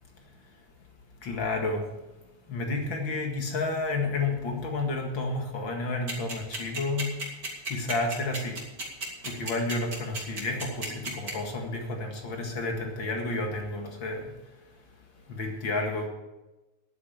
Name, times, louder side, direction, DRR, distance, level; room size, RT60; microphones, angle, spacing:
voice 1, 1.2-1.8 2.5-7.1 7.7-8.6 9.2-14.3 15.3-16.1, left 3 dB, 40° left, 2 dB, 2.1 m, -31 dB
sound 1, 6.1-11.3, right 3 dB, 25° right, 3.2 m, -33 dB
11.0 x 9.4 x 7.1 m, 1.1 s
omnidirectional pair, 4.0 m